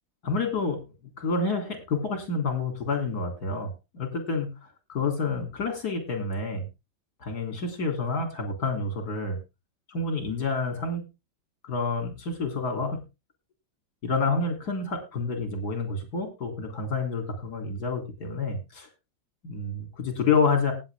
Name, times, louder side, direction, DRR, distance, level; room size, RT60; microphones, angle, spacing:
voice 1, 0.2-0.8 1.2-4.5 4.9-6.7 7.2-9.4 9.9-11.0 11.6-13.0 14.0-18.9 19.4-20.7, left 4 dB, 55° left, 5 dB, 3.8 m, -28 dB
18.5 x 7.7 x 3.6 m, 0.27 s
omnidirectional pair, 2.0 m